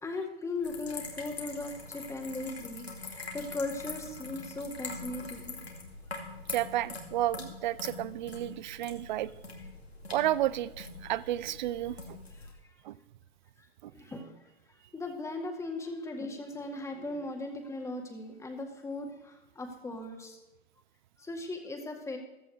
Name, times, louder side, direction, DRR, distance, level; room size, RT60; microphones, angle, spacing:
voice 1, 0.0-5.6 12.4-12.5 13.9-14.3 14.9-20.4 21.2-22.2, left 2 dB, 10° left, 3 dB, 1.9 m, -38 dB
sound 1, 0.6-12.5, left 3 dB, 85° left, 2.4 m, -43 dB
voice 2, 6.5-9.3 10.1-12.2 12.8-13.0 13.8-13.9, right 13 dB, 50° right, 18 dB, 0.5 m, -32 dB
15.0 x 14.0 x 3.3 m, 1.0 s
figure-of-eight pair, 100°, 30 cm